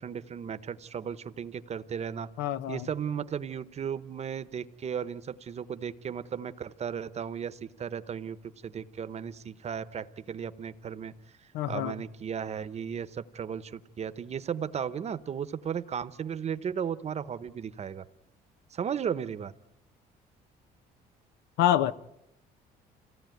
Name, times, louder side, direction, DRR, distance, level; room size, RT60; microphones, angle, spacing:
voice 1, 0.0-2.3 2.7-8.4 8.6-11.1 11.7-18.0 18.7-19.5, right 7 dB, 40° right, 0.9 m, -35 dB
voice 2, 2.4-2.9 11.5-12.0 21.6-21.9, left 12 dB, 90° left, 0.9 m, -26 dB
27.0 x 16.5 x 9.2 m
cardioid pair, 110°, 17 cm